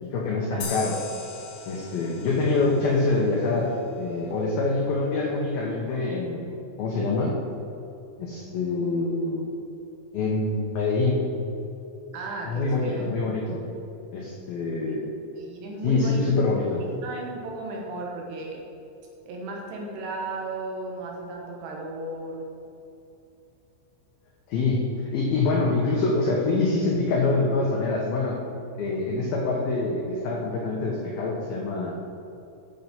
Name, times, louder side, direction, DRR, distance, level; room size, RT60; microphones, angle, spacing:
voice 1, 0.0-1.0 1.7-6.5 6.8-7.3 8.2-9.5 10.1-11.2 12.5-13.6 14.1-15.0 15.8-16.8 24.5-28.4 28.7-31.9, left 3 dB, 90° left, -2 dB, 2.0 m, -25 dB
sound 1, 0.6-3.9, left 4 dB, 60° left, 2.7 m, -40 dB
voice 2, 12.1-13.0 14.9-15.0 15.4-16.3 17.0-18.6 19.3-22.5, right 2 dB, 70° right, -1 dB, 2.9 m, -35 dB
10.0 x 6.7 x 6.0 m, 2.8 s
omnidirectional pair, 5.9 m